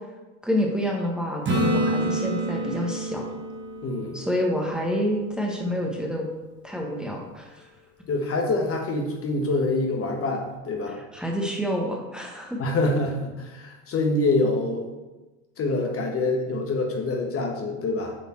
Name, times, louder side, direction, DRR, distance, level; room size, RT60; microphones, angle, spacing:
voice 1, 0.4-3.3 4.1-6.3 6.6-7.7 11.1-12.6, equal, ahead, -1 dB, 1.3 m, -28 dB
Acoustic guitar / Strum, 1.4-5.2 10.1-10.2, right 1 dB, 30° right, 1.8 m, -28 dB
voice 2, 3.8-4.2 8.1-11.0 12.6-14.9 15.6-18.2, left 2 dB, 35° left, 2 dB, 1.2 m, -26 dB
7.6 x 4.0 x 4.3 m, 1.1 s
hypercardioid pair, 90°, 38 cm